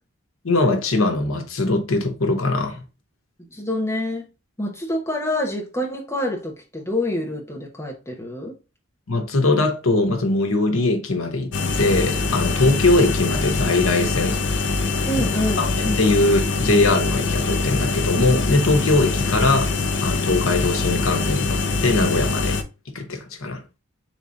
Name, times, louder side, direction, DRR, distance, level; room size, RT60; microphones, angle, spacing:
voice 1, 0.4-2.8 9.1-14.4 15.6-19.7 20.0-22.6 22.9-23.6, left 2 dB, 85° left, 1.0 m, -21 dB
voice 2, 3.5-4.3 4.6-8.6 15.1-15.7, left 1 dB, 15° left, 1.0 m, -26 dB
sound 1, 11.5-22.6, left 3 dB, 55° left, 0.6 m, -23 dB
3.6 x 3.0 x 3.9 m
head